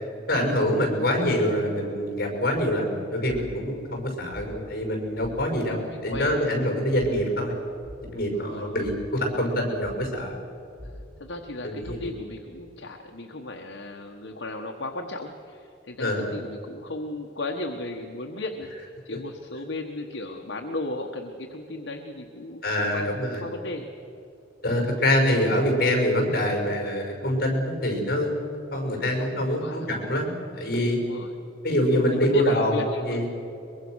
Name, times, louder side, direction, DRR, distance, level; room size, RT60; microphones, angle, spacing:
voice 1, 0.3-7.6 8.1-10.4 11.6-12.1 16.0-16.4 19.1-19.2 22.6-23.4 24.6-28.3 28.7-31.0 31.6-33.3, equal, 50° left, 2 dB, 5.7 m, -25 dB
sound 1, 2.7-2.8 3.3-3.7 4.3-4.8 5.2-5.6 6.1-6.5 6.9-7.4 7.8-8.5 8.8-9.2 9.8-10.2 10.8-11.2 11.8-12.3, left 1 dB, 25° left, 4.3 m, -43 dB
voice 2, 5.5-6.5 8.3-8.9 10.8-18.7 19.0-23.1 23.4-23.9 29.3-29.9 31.0-31.3 32.1-33.2, left 2 dB, 70° left, 2 dB, 1.3 m, -36 dB
23.0 x 22.5 x 6.4 m, 2.7 s
head